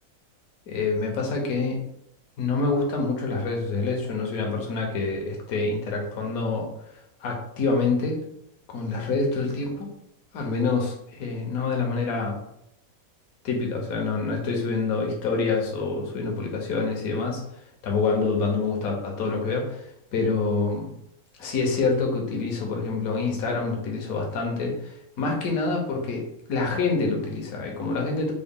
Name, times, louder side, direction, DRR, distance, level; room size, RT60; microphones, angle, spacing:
voice 1, 0.7-1.8 2.4-6.7 7.2-8.2 8.7-9.9 10.3-12.4 13.4-17.4 17.8-20.9 21.4-28.3, left 4 dB, 75° left, 1 dB, 1.2 m, -26 dB
3.8 x 2.2 x 3.6 m, 0.80 s
omnidirectional pair, 1.6 m